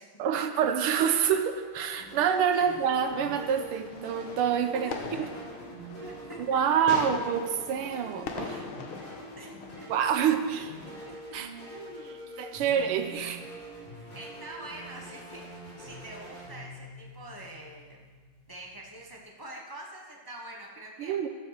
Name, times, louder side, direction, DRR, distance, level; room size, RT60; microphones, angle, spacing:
voice 1, 0.2-4.9 6.5-8.7 9.9-10.7 11.3-11.5 12.4-13.4 21.0-21.3, right 8 dB, 90° right, 8 dB, 1.8 m, -27 dB
sound 1, 1.1-19.2, equal, 55° left, 5.4 m, -45 dB
sound 2, 2.7-11.2, left 5 dB, 80° left, 1.9 m, -42 dB
voice 2, 4.7-5.3 5.9-6.6 7.0-7.2 9.4-9.5 9.8-9.9 11.1-11.2 11.7-13.0 13.9-18.0 18.5-21.3, right 1 dB, 15° left, -1 dB, 0.8 m, -45 dB
12.0 x 7.4 x 6.7 m, 1.5 s
omnidirectional pair, 2.4 m